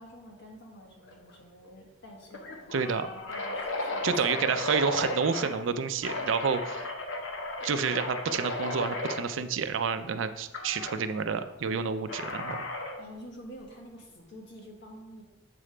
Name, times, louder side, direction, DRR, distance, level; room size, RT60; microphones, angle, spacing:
voice 1, 0.0-4.5 13.0-15.2, equal, 65° left, -1 dB, 1.5 m, -48 dB
sound 1, 1.1-1.4 1.7-1.8 2.3-5.6 6.0-9.2 10.5-11.0 12.1-13.0, left 2 dB, 90° left, 1.0 m, -35 dB
voice 2, 2.7-3.1 4.0-6.9 7.6-12.6, right 6 dB, 90° right, 10 dB, 0.4 m, -29 dB
7.6 x 3.2 x 4.9 m, 1.0 s
head